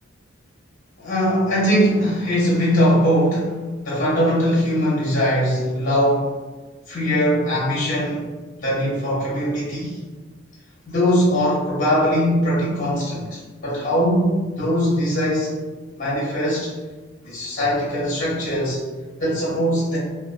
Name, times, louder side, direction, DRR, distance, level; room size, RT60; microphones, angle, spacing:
voice 1, 1.0-6.3 6.9-8.3 8.6-10.0 10.9-15.5 16.0-16.7 17.2-18.8 19.2-20.0, equal, 40° left, -6 dB, 0.7 m, -21 dB
2.4 x 2.2 x 2.4 m, 1.3 s
head